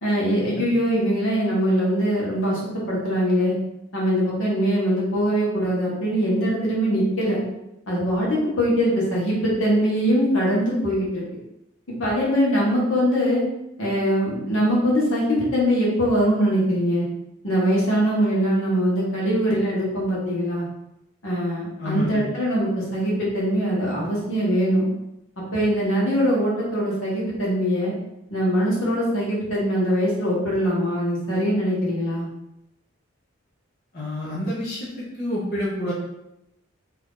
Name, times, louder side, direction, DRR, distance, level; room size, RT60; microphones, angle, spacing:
voice 1, 0.0-3.5 3.9-7.4 7.9-11.2 11.9-13.4 13.8-17.0 17.4-20.6 21.2-24.8 25.5-27.9 28.3-32.3, equal, 85° left, -5 dB, 1.2 m, -22 dB
voice 2, 21.8-22.2 33.9-35.9, left 1 dB, 50° left, -7 dB, 0.7 m, -28 dB
2.8 x 2.5 x 3.6 m, 0.85 s
head